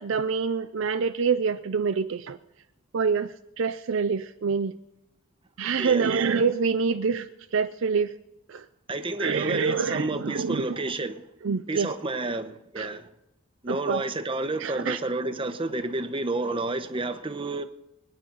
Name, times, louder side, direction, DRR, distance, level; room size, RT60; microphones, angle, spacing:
voice 1, 0.0-2.4 2.9-4.8 5.6-8.1 8.5-8.7 9.2-10.8 11.4-11.9 12.8-13.0 13.7-14.0 14.6-15.0, right 5 dB, 65° right, 0.5 m, -26 dB
voice 2, 5.8-6.1 8.9-11.2 11.7-13.1 13.6-17.6, right 2 dB, 25° right, 0.9 m, -30 dB
25.0 x 10.0 x 4.0 m
head